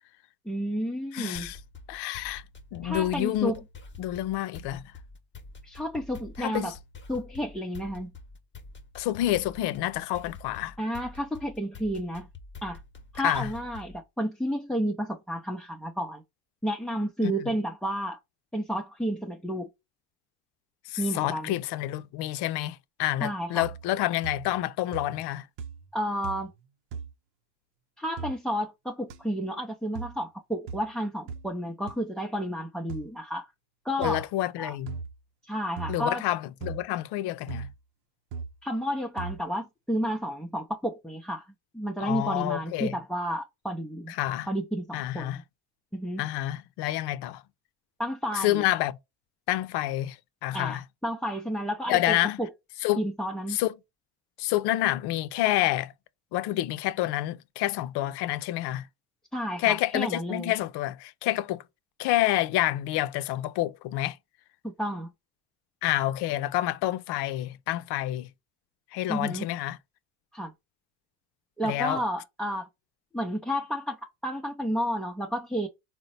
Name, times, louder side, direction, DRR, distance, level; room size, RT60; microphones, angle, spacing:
voice 1, 0.5-1.5 2.8-3.6 5.6-6.7 7.1-8.1 10.8-12.3 12.6-12.8 13.1-16.2 16.6-18.2 18.5-19.7 21.0-21.6 23.2-23.6 25.9-26.5 28.0-33.5 33.8-34.3 34.6-34.8 35.4-36.2 38.6-41.5 41.7-44.1 44.5-45.4 45.9-46.2 48.0-48.6 50.5-52.5 53.0-53.6 59.3-60.5 64.6-65.1 69.1-69.5 70.3-70.5 71.6-72.7 73.1-75.7, equal, ahead, 0.5 m, -31 dB
voice 2, 1.1-1.6 1.9-2.4 2.7-3.6 4.0-4.8 6.4-6.7 8.9-10.7 13.2-13.5 17.2-17.3 20.9-25.5 34.0-34.9 35.9-37.7 42.0-43.0 44.1-44.5 44.9-45.4 46.2-47.4 48.3-48.9 49.5-50.2 50.4-50.8 51.9-52.4 52.8-53.1 53.5-53.7 54.4-55.9 56.3-58.9 59.6-61.6 62.0-64.2 65.8-68.3 68.9-69.8 71.6-72.0, left 15 dB, 65° left, 0.6 m, -28 dB
sound 1, 1.4-14.0, left 3 dB, 25° left, 0.9 m, -47 dB
sound 2, 23.6-24.0 24.2-24.7 24.9-25.3 25.6-25.9 26.2-26.6 26.9-27.1 28.2-28.3 29.1-29.2 29.9-30.2 30.7-30.8 31.3-31.5 31.9-32.0 32.9-33.1 34.0-34.2 34.9-35.2 35.8-36.0 36.6-36.8 37.5-37.8 38.3-38.5 39.2-39.4, right 5 dB, 70° right, 0.7 m, -38 dB
3.9 x 2.2 x 4.0 m
supercardioid pair, 80°, 44 cm